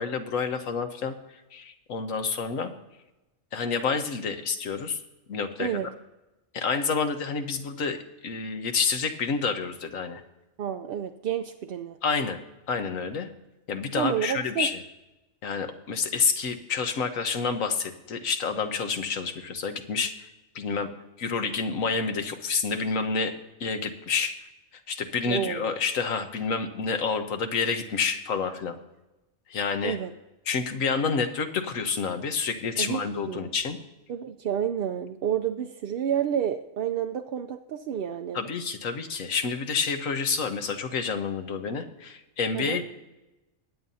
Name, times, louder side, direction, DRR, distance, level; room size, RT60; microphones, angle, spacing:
voice 1, 0.0-2.7 3.5-5.0 5.3-5.9 6.5-10.2 12.0-12.4 12.7-13.3 13.7-14.8 15.4-20.1 20.5-20.9 21.2-23.3 23.6-24.4 24.9-28.8 29.5-30.0 30.5-33.8 38.3-42.8, left 5 dB, 85° left, 7 dB, 1.4 m, -28 dB
voice 2, 5.6-5.9 10.6-12.0 14.0-14.7 25.3-25.7 29.8-30.1 32.8-33.0 33.3-33.5 34.1-38.4 42.5-42.8, right 9 dB, 60° right, 5 dB, 0.6 m, -29 dB
22.0 x 9.0 x 2.7 m, 1.0 s
omnidirectional pair, 1.3 m